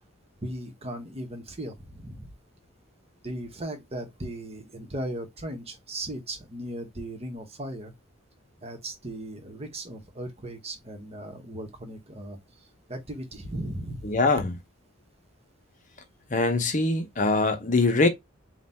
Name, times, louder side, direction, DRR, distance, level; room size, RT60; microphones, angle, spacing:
voice 1, 0.4-2.3 3.2-7.9 8.6-12.4 12.9-14.0, right 1 dB, 30° right, 1.0 m, -37 dB
voice 2, 14.0-14.5 16.3-18.1, left 3 dB, 40° left, 0.8 m, -23 dB
3.9 x 2.3 x 4.1 m
head